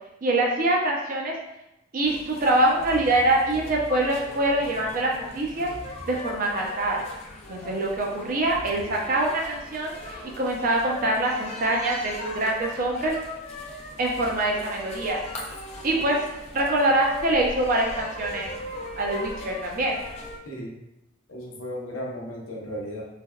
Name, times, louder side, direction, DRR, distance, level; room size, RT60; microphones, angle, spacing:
voice 1, 0.2-1.4 1.9-5.7 6.1-7.0 7.5-13.2 14.0-15.2 15.8-16.2 16.5-18.5 19.0-20.0, right 1 dB, 40° right, -1 dB, 0.5 m, -24 dB
sound 1, 2.0-20.4, left 2 dB, 30° left, 0.4 m, -39 dB
voice 2, 20.4-20.8 21.3-23.1, equal, 85° left, -2 dB, 0.7 m, -35 dB
3.3 x 2.1 x 2.3 m, 0.89 s
head